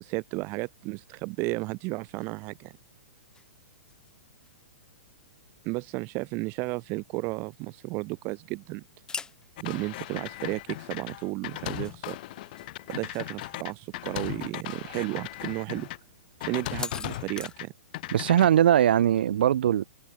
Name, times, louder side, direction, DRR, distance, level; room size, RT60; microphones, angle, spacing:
voice 1, 0.0-2.7 5.6-8.8 9.6-12.2 12.9-15.9 16.4-17.7, right 26 dB, 30° right, 1.1 m, -33 dB
sound 1, 1.8-17.5, left 5 dB, 10° left, 3.7 m, -48 dB
sound 2, 9.6-16.0 16.4-17.7 17.9-18.5, left 17 dB, 45° left, 3.5 m, -37 dB
voice 2, 18.1-19.8, right 10 dB, 55° right, 0.5 m, -21 dB
figure-of-eight pair, 110°, 7 cm